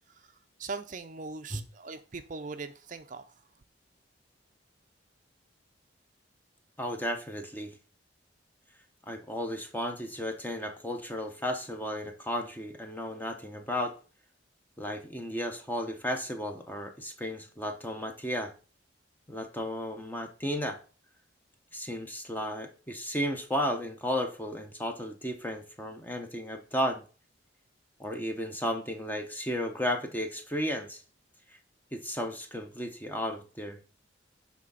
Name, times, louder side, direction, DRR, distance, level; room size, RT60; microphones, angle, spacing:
voice 1, 0.6-3.3, right 4 dB, 40° right, 0.5 m, -40 dB
voice 2, 6.8-7.8 9.1-14.0 14.8-18.5 19.3-20.8 21.7-27.0 28.0-31.0 31.9-33.8, equal, 10° left, 0.8 m, -34 dB
7.6 x 3.6 x 5.5 m
head